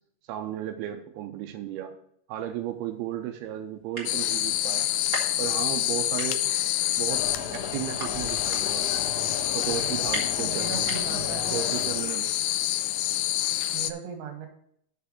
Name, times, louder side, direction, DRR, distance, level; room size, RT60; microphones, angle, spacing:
voice 1, 0.3-1.9 2.3-4.9 5.4-6.4 7.0-7.2 7.5-8.9 9.5-10.8 11.1-11.2 11.5-12.3, right 11 dB, 90° right, 4 dB, 2.6 m, -34 dB
sound 1, 2.4-2.5 3.2-3.3 3.5-3.6 3.8-4.4 4.8-5.9 6.2-11.3, right 2 dB, 25° right, 1.5 m, -37 dB
sound 2, 4.1-13.9, left 14 dB, 85° left, 2.1 m, -27 dB
sound 3, 7.1-12.1, left 5 dB, 50° left, 2.3 m, -36 dB
voice 2, 9.7-10.1 10.4-11.9 13.7-14.5, right 7 dB, 70° right, 5 dB, 3.1 m, -38 dB
6.8 x 5.7 x 6.5 m, 0.68 s
omnidirectional pair, 4.5 m